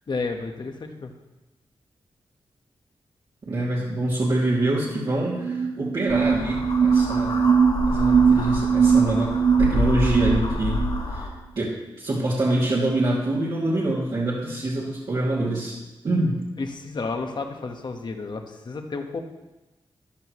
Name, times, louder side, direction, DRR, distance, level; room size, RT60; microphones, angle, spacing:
voice 1, 0.1-1.1 16.6-19.2, left 3 dB, 50° left, 4 dB, 1.3 m, -31 dB
voice 2, 3.5-7.4 7.9-10.8 11.1-11.3 11.5-15.7 16.0-16.4, right 1 dB, 55° right, -8 dB, 2.6 m, -25 dB
sound 1, 5.3-11.0, right 6 dB, 80° right, 1.4 m, -21 dB
sound 2, 6.1-11.3, left 2 dB, 70° left, 2.8 m, -28 dB
14.0 x 11.5 x 3.2 m, 1.1 s
wide cardioid pair, 115°, 10 cm